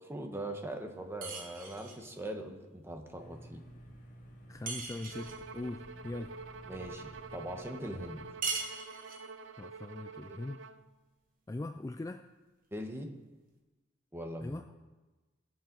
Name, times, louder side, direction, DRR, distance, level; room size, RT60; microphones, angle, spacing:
voice 1, 0.1-3.6 6.7-8.2 10.2-10.4 12.7-13.1 14.1-14.6, right 1 dB, 15° right, 4 dB, 1.1 m, -41 dB
sound 1, 1.2-2.0 4.7-5.4 8.4-9.3, right 4 dB, 50° right, 1.7 m, -39 dB
sound 2, 3.2-8.3, equal, 45° left, 2.0 m, -52 dB
voice 2, 4.5-6.4 9.6-10.6 11.5-12.3 14.4-14.7, left 2 dB, 15° left, 7 dB, 0.3 m, -41 dB
Bowed string instrument, 5.1-10.8, right 4 dB, 85° right, 0.6 m, -47 dB
20.5 x 7.1 x 4.0 m, 1.2 s
head